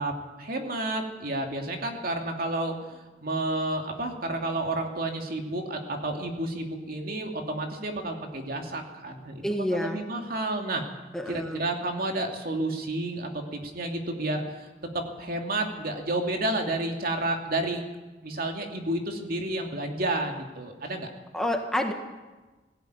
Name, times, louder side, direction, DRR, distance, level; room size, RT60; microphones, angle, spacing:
voice 1, 0.0-10.8 11.3-14.7 14.9-17.8 18.2-21.1, right 2 dB, 55° right, 3 dB, 2.7 m, -31 dB
voice 2, 9.4-10.0 11.1-11.6 21.3-21.9, left 1 dB, 5° left, 3 dB, 1.6 m, -28 dB
18.0 x 16.0 x 9.4 m, 1.2 s
head